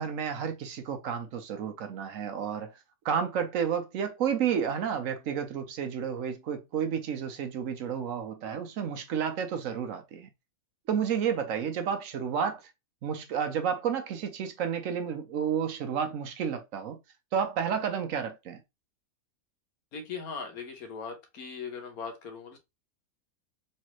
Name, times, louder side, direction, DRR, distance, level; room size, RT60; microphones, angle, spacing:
voice 1, 0.0-2.7 3.0-10.3 10.9-12.7 13.0-17.0 17.3-18.6, right 7 dB, 70° right, 1.0 m, -31 dB
voice 2, 19.9-22.6, left 5 dB, 80° left, 1.4 m, -39 dB
3.3 x 3.1 x 2.9 m
omnidirectional pair, 1.5 m